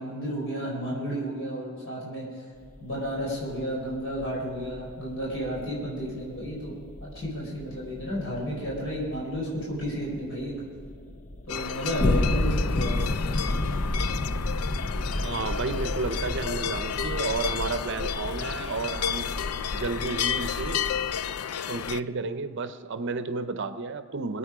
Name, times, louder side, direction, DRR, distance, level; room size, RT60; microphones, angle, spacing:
voice 1, 0.0-2.4 2.8-10.6 11.5-13.0, equal, 60° left, -4 dB, 4.7 m, -32 dB
sound 1, 2.6-21.2, left 1 dB, 35° left, 0.5 m, -32 dB
sound 2, 11.5-22.0, left 8 dB, 85° left, 0.4 m, -32 dB
voice 2, 15.2-19.3 19.7-20.8 21.7-24.4, right 4 dB, 55° right, 11 dB, 0.7 m, -32 dB
23.5 x 8.8 x 4.9 m, 2.2 s
head